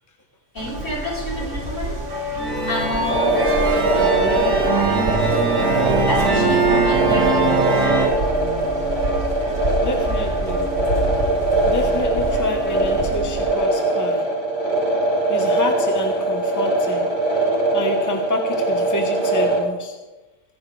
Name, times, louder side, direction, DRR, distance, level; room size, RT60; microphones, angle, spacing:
voice 1, 0.5-2.0 2.7-5.3 6.0-7.9, left 1 dB, 65° left, -6 dB, 4.8 m, -29 dB
sound 1, 0.6-13.5, right 1 dB, 65° right, 2.2 m, -28 dB
sound 2, 2.4-8.1, right 4 dB, 80° right, 2.2 m, -21 dB
sound 3, 3.1-19.6, right 2 dB, 35° left, 4.6 m, -22 dB
voice 2, 9.8-10.7 11.6-14.3 15.3-17.2 17.7-20.0, left 1 dB, 15° left, 3 dB, 1.2 m, -28 dB
22.5 x 11.0 x 3.4 m, 1.1 s
omnidirectional pair, 1.4 m